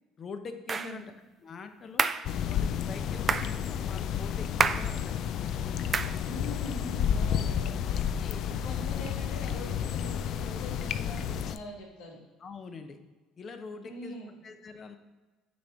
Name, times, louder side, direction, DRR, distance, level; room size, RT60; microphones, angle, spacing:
voice 1, 0.2-1.1 1.4-2.1 2.4-5.3 8.0-8.5 12.4-13.0 13.4-14.2 14.4-15.0, left 4 dB, 40° left, 8 dB, 0.7 m, -44 dB
voice 2, 0.7-1.0 6.2-7.9 8.4-12.2 13.8-14.4, equal, 90° left, -2 dB, 1.9 m, -43 dB
sound 1, 0.7-1.0 2.0-2.3 3.3-3.5 4.6-4.9 5.9-6.2, right 5 dB, 30° right, 0.3 m, -27 dB
sound 2, 2.2-11.6, left 8 dB, 60° left, 0.3 m, -31 dB
6.4 x 3.5 x 5.5 m, 1.2 s
cardioid pair, 115°, 0 cm